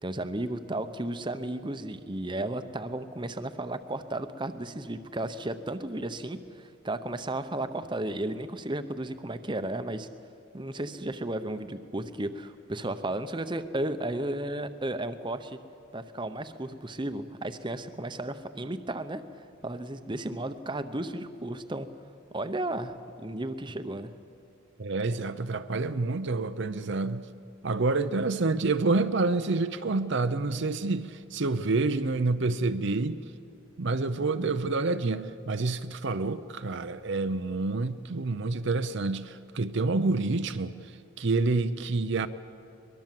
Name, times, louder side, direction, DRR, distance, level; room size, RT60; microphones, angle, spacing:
voice 1, 0.0-10.1 10.5-15.6 15.9-19.2 19.6-21.9 22.3-24.1, right 1 dB, 20° right, 10 dB, 0.8 m, -34 dB
voice 2, 24.8-27.3 27.6-33.2 33.8-40.8 41.2-42.3, right 3 dB, 55° right, 10 dB, 0.6 m, -28 dB
22.5 x 21.0 x 7.6 m, 2.4 s
head